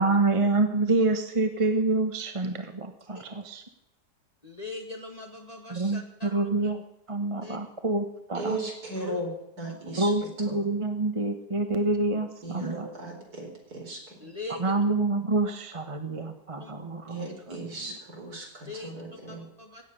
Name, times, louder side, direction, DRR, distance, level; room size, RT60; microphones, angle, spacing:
voice 1, 0.0-3.6 5.7-6.8 7.1-8.6 9.9-12.9 14.6-17.7, right 2 dB, 20° right, 7 dB, 1.0 m, -27 dB
voice 2, 4.4-6.5 7.4-7.6 8.9-9.2 9.7-9.8 14.2-14.7 16.6-16.7 18.7-18.9 19.3-19.8, left 3 dB, 20° left, 2 dB, 2.1 m, -41 dB
voice 3, 8.3-9.3 9.6-10.1 10.5-10.6 12.4-14.0 17.1-19.5, right 2 dB, 60° right, 0 dB, 4.9 m, -36 dB
17.0 x 7.4 x 9.9 m, 0.82 s
omnidirectional pair, 1.8 m